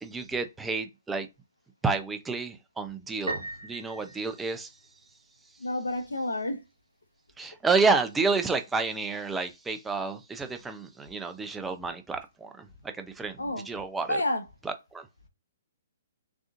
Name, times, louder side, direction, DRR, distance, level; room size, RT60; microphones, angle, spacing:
voice 1, 0.0-1.3 1.8-4.7 7.4-12.7 13.0-14.2 14.6-15.0, right 4 dB, 10° right, 0.6 m, -30 dB
Piano, 3.3-5.1, right 2 dB, 90° right, 0.6 m, -38 dB
voice 2, 5.6-6.6 13.4-13.7 14.1-14.4, left 1 dB, 90° left, 0.9 m, -29 dB
3.9 x 3.5 x 2.5 m
figure-of-eight pair, 125°, 0 cm